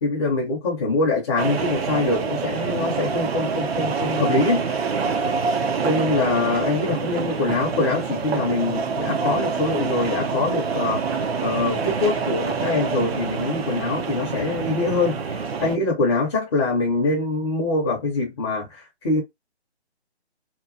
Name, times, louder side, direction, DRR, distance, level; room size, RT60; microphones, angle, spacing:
voice 1, 0.0-4.6 5.8-19.2, left 3 dB, 25° left, 0.6 m, -24 dB
sound 1, 1.4-15.8, right 5 dB, 65° right, 0.6 m, -26 dB
2.9 x 2.2 x 2.5 m
figure-of-eight pair, 150°, 34 cm